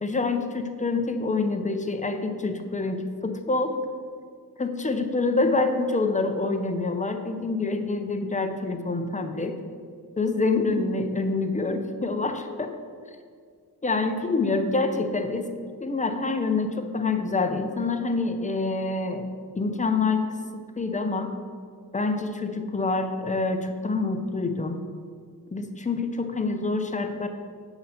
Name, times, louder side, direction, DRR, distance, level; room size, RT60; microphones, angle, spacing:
voice 1, 0.0-3.8 4.6-9.6 10.2-12.7 13.8-15.5 15.8-19.3 19.5-20.2 20.8-21.3 21.9-24.8 25.5-27.3, left 3 dB, 20° left, 7 dB, 0.6 m, -26 dB
8.4 x 4.0 x 7.0 m, 2.1 s
wide cardioid pair, 125°, 38 cm